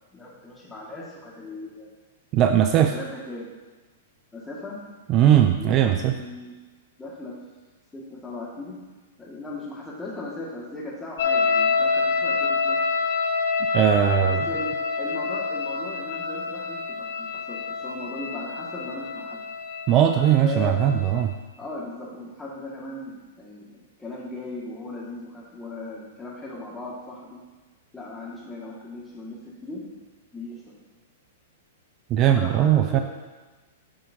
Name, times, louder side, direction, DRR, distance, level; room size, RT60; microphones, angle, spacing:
voice 1, 0.1-1.9 2.6-3.5 4.3-4.8 5.5-6.5 7.0-7.3 7.9-8.8 9.2-12.8 14.2-19.4 20.2-20.9 21.6-27.4 27.9-29.8 30.3-30.6 32.2-33.0, left 2 dB, 10° left, -4 dB, 1.9 m, -37 dB
voice 2, 2.3-2.9 5.1-6.1 13.7-14.5 19.9-21.3 32.1-33.0, right 10 dB, 35° right, 7 dB, 0.3 m, -19 dB
sound 1, 11.2-21.2, left 4 dB, 60° left, 0.8 m, -27 dB
8.5 x 5.6 x 2.8 m, 1.2 s
figure-of-eight pair, 105°, 0 cm